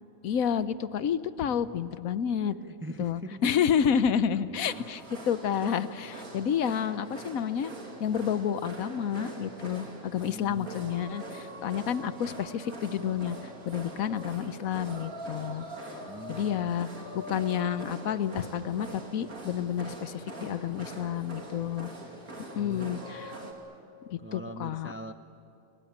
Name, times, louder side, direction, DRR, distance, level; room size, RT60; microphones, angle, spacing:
voice 1, 0.2-2.6 3.0-7.7 8.0-15.9 16.3-21.9 22.5-23.4 24.1-24.9, left 8 dB, 80° left, 14 dB, 1.2 m, -30 dB
voice 2, 1.4-1.8 2.6-3.5 4.3-4.9 10.3-10.9 16.1-16.7 21.0-21.1 22.5-23.3 24.2-25.1, right 1 dB, 15° right, 8 dB, 0.4 m, -43 dB
sound 1, 4.6-23.5, right 2 dB, 85° right, 3.4 m, -43 dB
28.5 x 21.5 x 8.7 m, 2.6 s
omnidirectional pair, 1.5 m